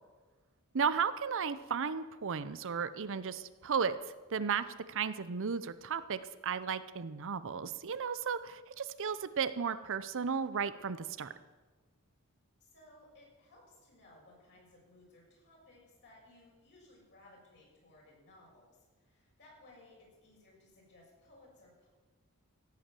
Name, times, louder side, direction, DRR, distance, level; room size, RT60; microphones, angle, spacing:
voice 1, 0.7-4.0 4.3-11.3, right 6 dB, 60° right, 14 dB, 0.7 m, -34 dB
voice 2, 12.6-21.9, left 2 dB, 55° left, -3 dB, 6.4 m, -60 dB
16.5 x 8.5 x 7.5 m, 1.3 s
head